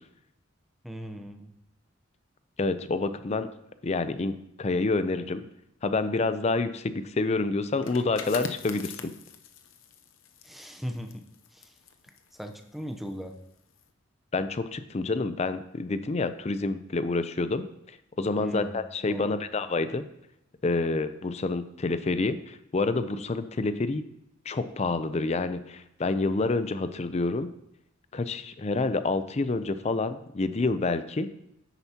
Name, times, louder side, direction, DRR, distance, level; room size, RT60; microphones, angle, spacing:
voice 1, 0.8-1.6 10.4-11.3 11.5-11.8 12.3-13.4 18.4-18.8 19.1-19.4, equal, ahead, 5 dB, 0.7 m, -38 dB
voice 2, 2.6-3.5 3.8-5.4 5.8-9.1 14.3-17.7 18.2-20.0 20.6-24.0 24.5-27.5 28.1-31.3, left 3 dB, 35° left, 11 dB, 0.5 m, -28 dB
sound 1, 7.7-13.2 13.6-13.8, left 5 dB, 85° left, 0.7 m, -43 dB
10.0 x 8.1 x 2.9 m, 0.81 s
head